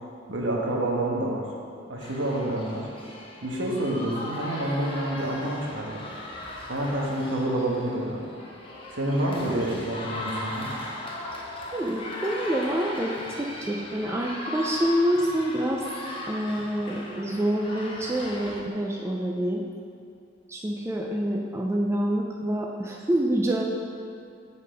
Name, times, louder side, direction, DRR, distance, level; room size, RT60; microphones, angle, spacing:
voice 1, 0.3-1.5 1.9-2.9 3.4-6.0 6.7-8.2 8.9-10.7, right 1 dB, 75° right, -3 dB, 1.2 m, -28 dB
sound 1, 2.0-18.6, left 1 dB, 30° left, 0.7 m, -38 dB
voice 2, 11.7-15.8 16.3-19.6 20.5-23.6, right 1 dB, 15° right, -1 dB, 0.4 m, -27 dB
7.6 x 4.1 x 5.1 m, 2.3 s
head